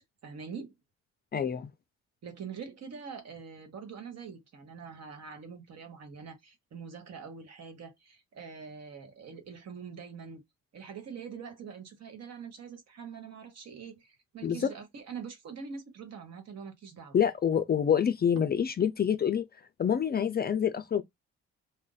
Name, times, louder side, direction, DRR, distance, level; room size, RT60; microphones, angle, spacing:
voice 1, 0.2-0.7 2.2-10.4 10.7-17.2, right 6 dB, 60° right, 1.3 m, -44 dB
voice 2, 1.3-1.7 14.4-14.7 17.1-19.4 19.8-21.0, left 8 dB, 30° left, 0.4 m, -27 dB
2.5 x 2.1 x 3.9 m
cardioid pair, 90°, 30 cm